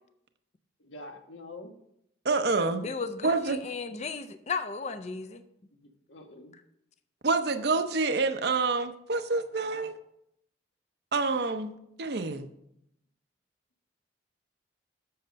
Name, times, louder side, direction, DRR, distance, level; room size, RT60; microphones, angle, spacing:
voice 1, 0.8-1.7 3.6-3.9 5.7-6.5, left 2 dB, 80° left, 4 dB, 1.3 m, -47 dB
voice 2, 2.2-2.9 3.2-3.6 7.2-10.0 11.1-11.7 12.0-12.5, right 3 dB, 55° right, 8 dB, 0.7 m, -27 dB
voice 3, 2.8-5.4, left 4 dB, 35° left, 10 dB, 0.5 m, -35 dB
7.8 x 6.6 x 5.2 m, 0.76 s
head